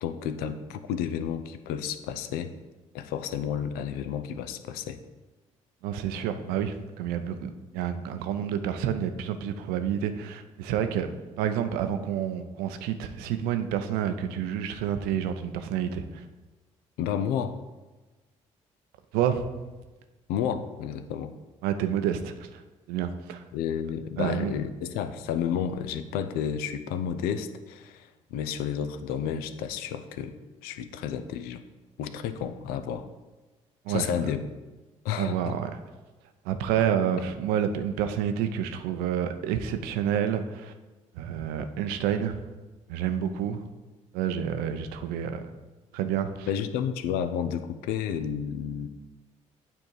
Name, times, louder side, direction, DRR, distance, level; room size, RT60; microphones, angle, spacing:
voice 1, 0.0-2.5 2.9-5.0 17.0-17.6 20.3-21.3 23.5-30.3 30.6-31.6 32.0-33.1 33.9-34.5 35.0-35.5 46.5-48.9, left 8 dB, 70° left, 10 dB, 0.5 m, -31 dB
voice 2, 5.8-11.1 11.4-16.2 19.1-19.5 21.6-22.6 22.9-23.4 24.2-24.5 33.8-34.1 35.2-35.7 36.4-40.7 41.2-42.4 42.9-43.6 44.1-45.4 45.9-46.5, right 9 dB, 70° right, 9 dB, 0.6 m, -29 dB
8.9 x 3.6 x 4.5 m, 1.2 s
hypercardioid pair, 50°, 16 cm